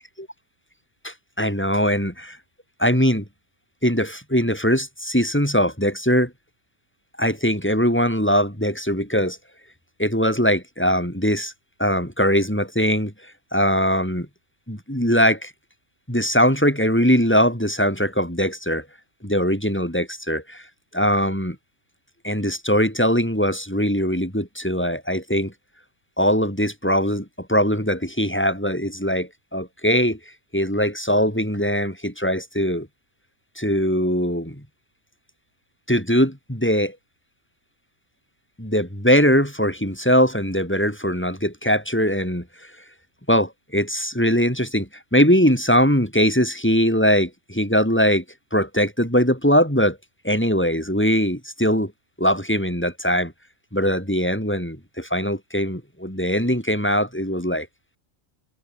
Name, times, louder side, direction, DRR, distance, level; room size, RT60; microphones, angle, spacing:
voice 1, 1.0-2.4 2.8-3.2 3.8-6.3 7.2-9.4 10.0-11.5 11.8-13.1 13.5-14.3 14.7-15.5 16.1-18.8 19.2-20.6 20.9-21.6 22.2-25.5 26.2-30.2 30.5-32.9 33.6-34.6 35.9-36.9 38.6-42.4 43.3-48.2 48.5-50.0 50.2-51.9 52.2-53.3 53.7-57.7, equal, 10° left, 6.7 m, -21 dB
omnidirectional pair, 1.3 m